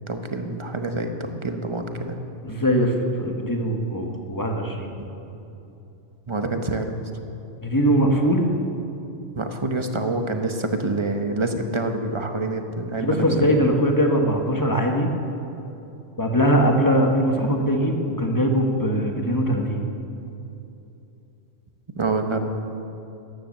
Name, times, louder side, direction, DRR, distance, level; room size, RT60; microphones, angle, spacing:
voice 1, 0.1-2.2 5.0-5.1 6.3-7.0 9.4-13.2 16.6-16.8 22.0-22.4, right 2 dB, 25° right, 5 dB, 0.8 m, -27 dB
voice 2, 2.4-4.9 7.6-8.5 13.0-15.1 16.2-19.8, equal, 15° left, 2 dB, 1.3 m, -21 dB
14.0 x 10.5 x 6.6 m, 2.8 s
omnidirectional pair, 1.2 m